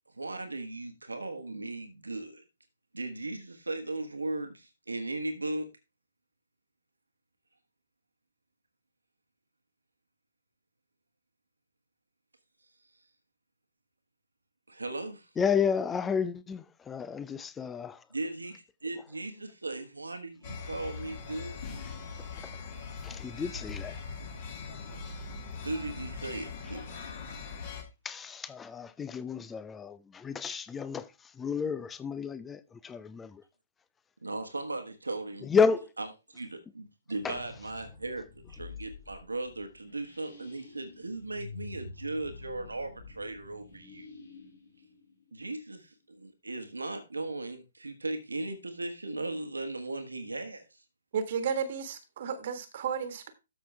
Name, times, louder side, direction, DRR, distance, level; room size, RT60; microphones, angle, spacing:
voice 1, 0.1-2.4 2.9-5.7 14.7-15.3 18.1-21.6 25.6-27.1 34.2-35.5 36.0-44.1 45.3-50.8, right 2 dB, 80° right, 1.4 m, -37 dB
voice 2, 15.4-17.9 23.0-23.9 28.1-30.0 30.2-31.0 31.4-33.3 35.5-35.8, left 6 dB, 10° left, 0.6 m, -30 dB
sound 1, 20.4-27.8, left 5 dB, 40° left, 2.6 m, -41 dB
sound 2, 37.2-45.8, left 4 dB, 70° left, 4.8 m, -49 dB
voice 3, 51.1-53.3, right 7 dB, 45° right, 1.6 m, -33 dB
13.0 x 6.0 x 3.4 m
figure-of-eight pair, 125°, 0 cm